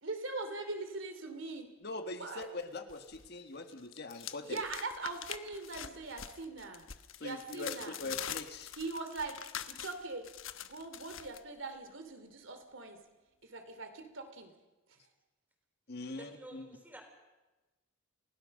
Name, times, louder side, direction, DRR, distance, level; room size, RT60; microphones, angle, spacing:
voice 1, 0.0-1.7 2.2-2.5 4.4-6.8 7.2-8.0 8.8-9.4 9.7-10.2 10.6-13.0 13.4-14.5, right 3 dB, 70° right, 7 dB, 2.8 m, -41 dB
voice 2, 1.8-4.6 7.2-8.7 15.9-16.7, left 2 dB, 55° left, 6 dB, 1.7 m, -42 dB
sound 1, 2.4-3.3 3.6-11.4, left 10 dB, 75° left, 1.0 m, -44 dB
voice 3, 16.1-17.0, right 1 dB, 10° right, 3 dB, 4.0 m, -51 dB
29.5 x 16.5 x 6.5 m, 1.1 s
head